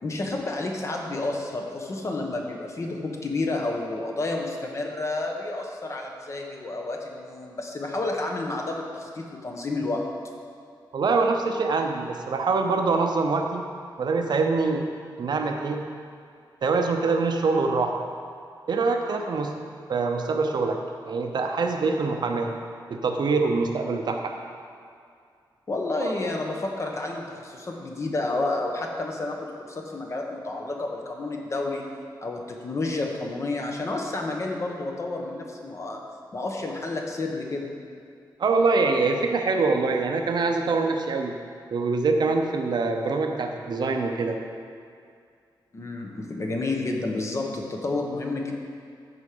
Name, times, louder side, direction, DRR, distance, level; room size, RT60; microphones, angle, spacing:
voice 1, 0.0-10.0 25.7-31.8 32.2-36.0 36.3-37.7 45.7-48.6, left 2 dB, 35° left, 1 dB, 1.1 m, -30 dB
voice 2, 10.9-13.7 14.0-14.8 15.2-15.8 16.6-18.0 18.7-19.5 19.9-20.8 21.1-22.5 22.9-24.3 26.0-26.1 38.4-41.3 41.7-44.4, right 4 dB, 60° right, 4 dB, 0.7 m, -24 dB
13.5 x 4.7 x 5.1 m, 2.3 s
wide cardioid pair, 155°, 8 cm